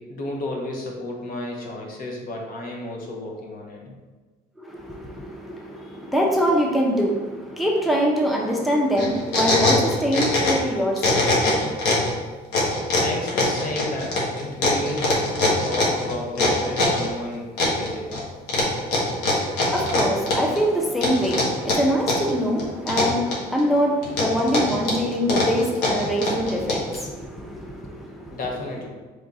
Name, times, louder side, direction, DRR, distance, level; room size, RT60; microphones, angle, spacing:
voice 1, 0.0-3.9 12.6-18.1 28.3-28.9, left 1 dB, 55° left, -1 dB, 1.0 m, -32 dB
voice 2, 4.6-11.9 19.4-28.4, equal, ahead, -1 dB, 0.6 m, -24 dB
sound 1, 9.0-10.7 11.0-12.1 12.5-17.1 17.6-18.2 18.5-20.6 21.0-22.3 22.6-23.6 24.0-27.0, left 2 dB, 90° left, 1.2 m, -22 dB
3.6 x 3.5 x 4.0 m, 1.4 s
cardioid pair, 110°, 17 cm